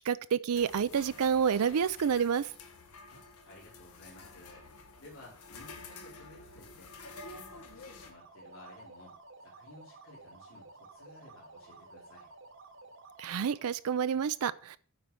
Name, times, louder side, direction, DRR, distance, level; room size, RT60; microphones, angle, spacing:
voice 1, 0.1-2.5 13.2-14.8, right 7 dB, 85° right, 0.4 m, -29 dB
sound 1, 0.5-8.1, left 3 dB, 90° left, 1.5 m, -49 dB
voice 2, 3.1-4.6 5.0-7.0 7.2-12.3, left 2 dB, 65° left, 3.6 m, -55 dB
sound 2, 8.0-13.7, right 3 dB, 55° right, 1.1 m, -53 dB
9.1 x 4.5 x 6.9 m
head